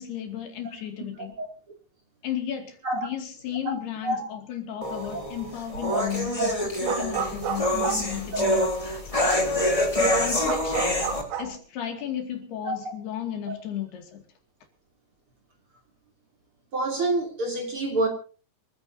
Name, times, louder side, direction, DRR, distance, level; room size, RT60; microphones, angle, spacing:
voice 1, 0.0-1.4 2.2-9.0 10.0-11.0 11.4-14.2, left 10 dB, 70° left, 4.4 m, -34 dB
sound 1, 4.8-11.2, left 1 dB, 10° left, 2.8 m, -26 dB
sound 2, 5.0-5.4 5.7-8.9 9.3-9.4 9.7-11.5, right 7 dB, 70° right, 4.1 m, -31 dB
voice 2, 16.7-18.1, right 2 dB, 35° right, 3.3 m, -27 dB
27.5 x 15.0 x 2.8 m
omnidirectional pair, 4.8 m